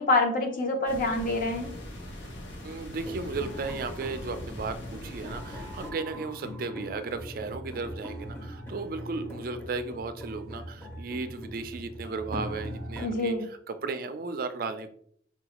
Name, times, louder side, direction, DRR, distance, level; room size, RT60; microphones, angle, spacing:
voice 1, 0.0-1.7 13.0-13.5, left 2 dB, 50° left, 3 dB, 0.7 m, -26 dB
sound 1, 0.9-5.9, equal, 90° left, 0.8 m, -42 dB
voice 2, 2.6-13.3 13.7-14.9, right 4 dB, 50° right, 9 dB, 0.4 m, -35 dB
sound 2, 3.0-13.1, equal, 10° left, 0.6 m, -41 dB
4.7 x 2.3 x 2.9 m, 0.64 s
head